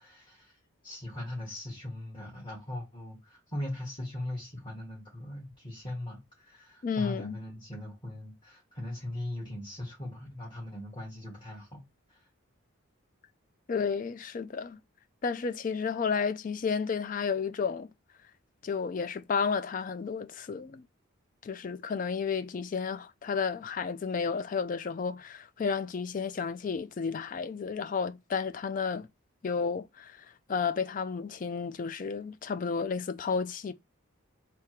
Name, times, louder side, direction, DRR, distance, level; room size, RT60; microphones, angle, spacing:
voice 1, 0.0-11.8 12.1-12.3, left 1 dB, 25° left, 1.6 m, -40 dB
voice 2, 6.8-7.4 13.7-14.8 15.2-17.9 18.6-20.8 21.4-29.1 29.4-33.7, left 5 dB, 40° left, 0.3 m, -32 dB
3.5 x 2.9 x 4.4 m
head